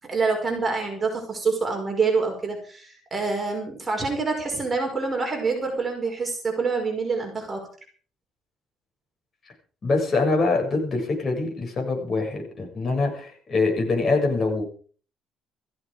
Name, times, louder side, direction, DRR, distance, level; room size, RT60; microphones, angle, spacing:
voice 1, 0.0-7.6, right 4 dB, 20° right, 1 dB, 5.5 m, -26 dB
voice 2, 9.8-14.6, left 3 dB, 35° left, 1 dB, 7.3 m, -24 dB
16.5 x 15.5 x 5.1 m, 0.43 s
cardioid pair, 115°, 0 cm